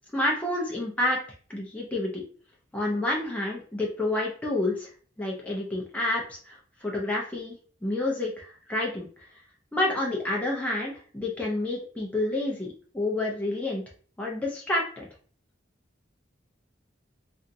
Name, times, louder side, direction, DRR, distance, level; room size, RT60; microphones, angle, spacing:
voice 1, 0.1-1.2 1.5-2.2 2.7-4.9 5.2-7.5 7.8-9.1 9.7-13.8 14.2-15.1, left 1 dB, 10° left, -3 dB, 0.6 m, -29 dB
2.8 x 2.6 x 2.5 m, 0.42 s
head